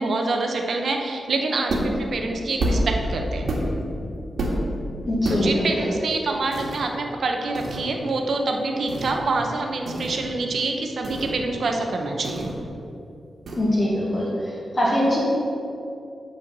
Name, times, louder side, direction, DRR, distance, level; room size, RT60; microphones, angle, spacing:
voice 1, 0.0-3.4 5.3-12.5, right 3 dB, 60° right, 3 dB, 0.9 m, -26 dB
sound 1, 1.7-2.0 2.6-3.0 3.5-3.9 4.4-4.7 5.2-5.5 6.5-6.8 7.6-7.8 8.9-9.2 9.9-10.3 11.0-11.4 12.2-12.7 13.5-13.6, right 1 dB, 80° right, 1.7 m, -27 dB
voice 2, 5.0-5.9 13.6-14.3 14.7-15.2, left 1 dB, 25° left, -6 dB, 2.1 m, -22 dB
8.3 x 4.5 x 7.3 m, 2.8 s
wide cardioid pair, 160°, 0 cm